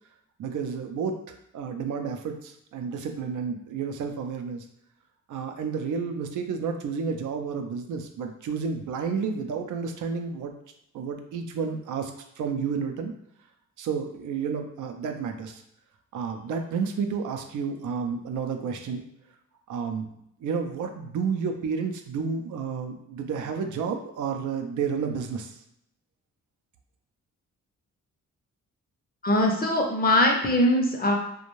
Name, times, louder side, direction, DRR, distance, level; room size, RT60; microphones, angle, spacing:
voice 1, 0.4-4.7 5.3-10.5 10.9-13.1 13.8-15.6 16.1-19.1 19.7-20.1 20.4-25.6, right 6 dB, 85° right, 5 dB, 0.4 m, -31 dB
voice 2, 29.2-31.1, left 1 dB, 30° left, 1 dB, 0.6 m, -21 dB
2.5 x 2.2 x 3.0 m, 0.77 s
cardioid pair, 100°, 30 cm